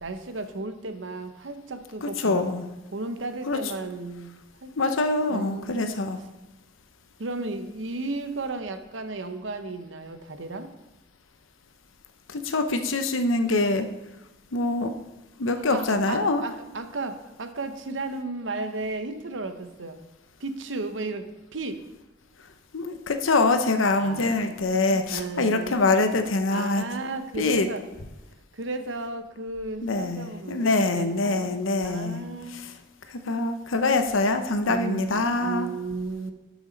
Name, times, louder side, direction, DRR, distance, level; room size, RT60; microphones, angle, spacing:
voice 1, 0.0-2.4 2.9-4.3 4.6-5.0 5.3-6.0 7.2-10.7 15.5-20.0 20.4-21.3 21.5-21.8 24.0-25.8 26.5-27.8 28.5-32.6 34.7-36.3, right 3 dB, 70° right, 9 dB, 0.8 m, -34 dB
voice 2, 2.0-2.7 3.5-3.6 4.8-6.2 12.3-13.9 14.5-14.9 15.4-16.4 22.7-26.8 27.4-27.7 29.8-32.2 33.1-35.7, left 3 dB, 85° left, 8 dB, 0.8 m, -24 dB
12.0 x 6.1 x 4.0 m, 1.1 s
head